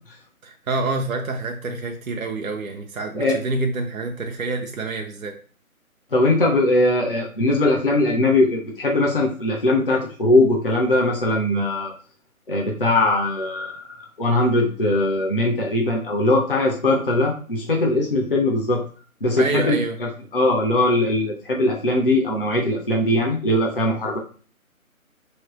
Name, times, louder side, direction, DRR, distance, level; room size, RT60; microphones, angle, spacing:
voice 1, 0.4-5.4 19.4-20.0, right 3 dB, 70° right, 3 dB, 0.6 m, -27 dB
voice 2, 6.1-11.9 12.5-18.8 19.2-24.2, left 1 dB, 40° left, 0 dB, 0.5 m, -20 dB
3.1 x 2.8 x 3.0 m, 0.40 s
figure-of-eight pair, 150°, 42 cm